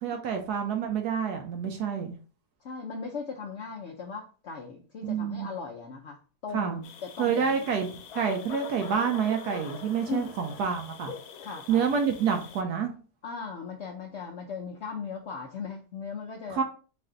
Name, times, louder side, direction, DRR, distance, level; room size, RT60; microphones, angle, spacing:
voice 1, 0.0-2.2 5.0-5.5 6.5-6.8 7.2-11.1 11.7-12.9 16.5-16.6, right 7 dB, 75° right, 4 dB, 1.1 m, -28 dB
voice 2, 2.6-6.2 6.4-7.6 10.1-10.3 11.4-11.9 13.2-16.6, left 5 dB, 85° left, 1 dB, 0.6 m, -38 dB
sound 1, 6.8-12.6, left 6 dB, 70° left, 1.1 m, -44 dB
4.1 x 2.5 x 3.7 m, 0.38 s
omnidirectional pair, 1.8 m